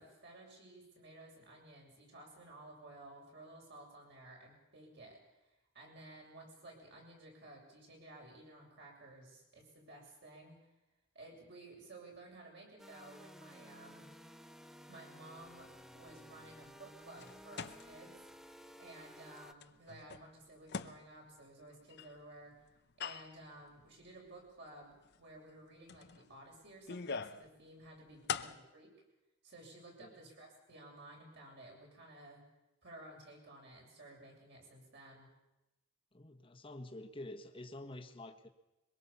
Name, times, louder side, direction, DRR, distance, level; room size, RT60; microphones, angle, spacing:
voice 1, 0.0-5.5 5.7-10.6 11.1-14.2 14.9-18.2 18.8-22.5 23.0-28.9 29.4-32.4 32.8-35.3, right 2 dB, 55° right, -1 dB, 7.6 m, -55 dB
sound 1, 12.8-19.5, equal, ahead, 0.7 m, -55 dB
sound 2, 15.4-18.5 18.9-19.1 19.3-22.2 22.7-23.5 24.0-24.1 25.0-25.2 25.5-25.6 25.9-27.5 27.8-28.5, left 6 dB, 50° left, 0.8 m, -44 dB
voice 2, 36.1-38.5, left 1 dB, 25° left, 6 dB, 1.5 m, -48 dB
23.0 x 22.0 x 7.0 m, 0.96 s
head